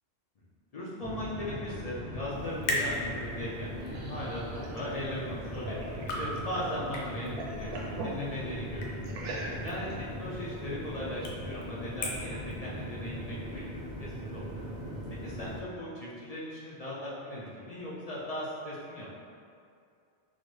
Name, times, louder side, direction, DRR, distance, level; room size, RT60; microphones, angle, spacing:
voice 1, 0.7-9.1 9.6-14.6 15.2-19.2, left 1 dB, 50° left, -7 dB, 0.4 m, -38 dB
sound 1, 1.0-15.6, equal, 5° left, 0.6 m, -39 dB
sound 2, 2.3-15.6, left 1 dB, 85° left, 0.9 m, -41 dB
sound 3, 3.4-6.8 7.1-8.2 9.0-9.9, right 2 dB, 60° right, 0.7 m, -41 dB
3.9 x 2.0 x 3.1 m, 2.4 s
omnidirectional pair, 1.1 m